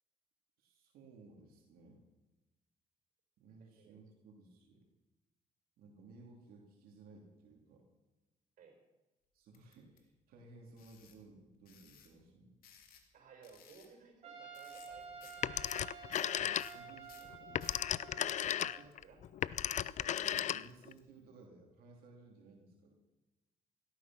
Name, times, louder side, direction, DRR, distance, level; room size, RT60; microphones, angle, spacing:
voice 1, 0.6-2.0 3.4-4.9 5.8-7.9 9.3-12.6 16.4-17.4 18.8-18.9 19.6-22.9, right 3 dB, 80° right, 0 dB, 3.0 m, -58 dB
voice 2, 3.6-4.0 8.6-8.8 13.1-15.3 15.6-15.8 18.1-18.7 19.0-19.2 19.6-20.0, right 5 dB, 60° right, 3 dB, 5.7 m, -59 dB
Ratchet Screwdriver, 9.5-10.0 10.8-11.2 11.7-12.1 12.6-13.1 13.4-13.9 14.5-14.9 15.2-15.4 15.6-17.8 18.4-21.0, left 8 dB, 75° left, 2.8 m, -60 dB
Trumpet, 14.2-18.8, right 6 dB, 45° right, 3.9 m, -51 dB
Telephone, 15.4-17.0 17.3-20.9, left 10 dB, 50° left, 0.5 m, -35 dB
17.0 x 13.5 x 6.1 m, 1.1 s
cardioid pair, 100°, 15 cm